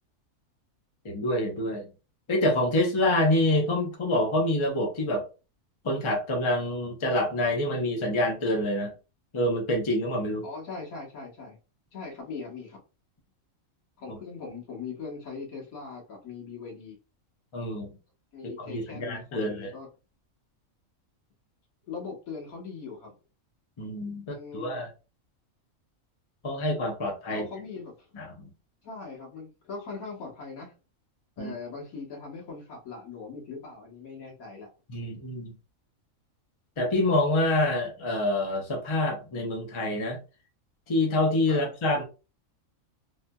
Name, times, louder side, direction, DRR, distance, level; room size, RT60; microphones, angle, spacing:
voice 1, 1.0-1.8 2.3-5.2 5.8-8.9 9.3-10.5 14.1-14.2 17.5-17.9 18.4-19.7 23.8-24.9 26.4-27.5 28.1-28.5 31.4-31.5 34.9-35.5 36.8-40.2 40.9-42.0, left 1 dB, 30° left, 0.6 m, -27 dB
voice 2, 10.4-11.6 11.9-12.8 14.0-17.0 18.3-19.9 21.9-23.1 24.3-24.8 27.3-27.9 28.8-30.7 31.4-34.7 41.5-41.6, left 4 dB, 85° left, 1.6 m, -40 dB
3.4 x 2.7 x 2.2 m
omnidirectional pair, 1.4 m